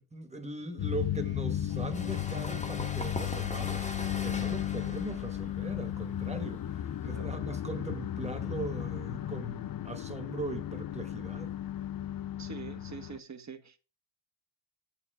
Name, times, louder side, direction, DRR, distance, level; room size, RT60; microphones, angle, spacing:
voice 1, 0.0-11.5, right 2 dB, 15° right, 1.3 m, -40 dB
sound 1, 0.8-13.2, left 11 dB, 50° left, 0.5 m, -35 dB
sound 2, 1.7-7.2, left 2 dB, 15° left, 1.0 m, -41 dB
voice 2, 12.4-13.8, right 6 dB, 35° right, 1.1 m, -44 dB
8.3 x 4.5 x 4.8 m
cardioid pair, 90°, 46 cm